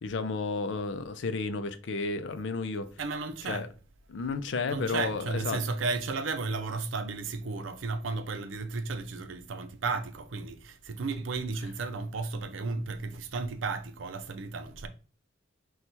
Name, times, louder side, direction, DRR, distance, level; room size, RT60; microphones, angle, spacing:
voice 1, 0.0-2.9 3.5-3.7 4.1-5.6, left 4 dB, 70° left, 0.4 m, -32 dB
voice 2, 3.0-3.7 4.7-14.9, right 4 dB, 85° right, 0.5 m, -34 dB
6.0 x 2.3 x 2.7 m
head